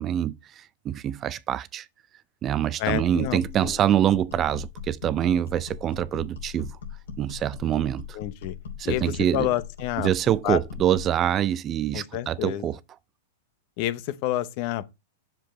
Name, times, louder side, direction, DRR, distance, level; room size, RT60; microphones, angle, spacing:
voice 1, 0.0-1.9 2.4-6.8 7.2-8.2 8.8-9.5 10.0-12.8, right 10 dB, 30° right, 0.4 m, -25 dB
voice 2, 2.8-3.8 8.1-8.6 8.8-10.1 10.4-10.6 11.9-12.7 13.8-14.9, left 14 dB, 50° left, 0.8 m, -29 dB
sound 1, 2.9-11.1, left 7 dB, 90° left, 3.0 m, -40 dB
7.4 x 7.0 x 3.1 m
hypercardioid pair, 135°, 0 cm